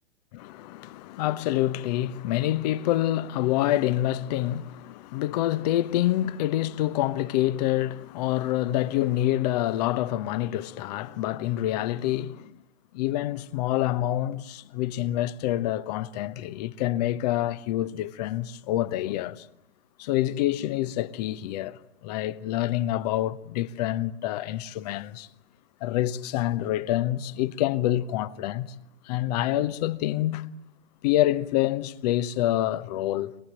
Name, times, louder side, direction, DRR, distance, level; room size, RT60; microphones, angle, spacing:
voice 1, 0.3-12.5 12.9-19.5 20.0-25.3 25.8-28.7 29.0-30.5 31.0-33.3, left 14 dB, 35° left, 1.0 m, -27 dB
26.5 x 20.0 x 8.8 m
figure-of-eight pair, 115°, 33 cm